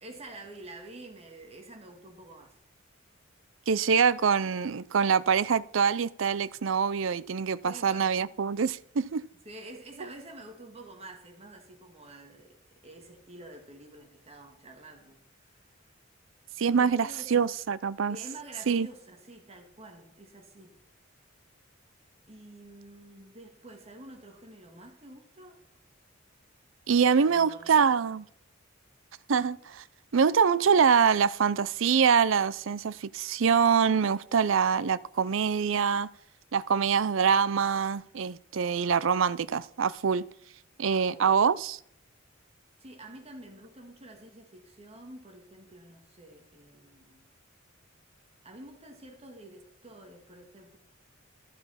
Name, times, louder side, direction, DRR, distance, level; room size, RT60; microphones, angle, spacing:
voice 1, 0.0-2.6 7.6-8.3 9.5-15.8 16.7-17.4 18.1-20.8 22.3-25.6 26.9-28.1 40.9-41.4 42.8-47.3 48.4-50.8, right 1 dB, 30° right, 2.1 m, -48 dB
voice 2, 3.7-9.3 16.6-18.2 18.7-18.9 26.9-28.2 29.3-29.8 30.1-36.1 36.5-40.2 40.8-41.8, right 6 dB, 65° right, 0.5 m, -25 dB
14.0 x 6.6 x 5.7 m
head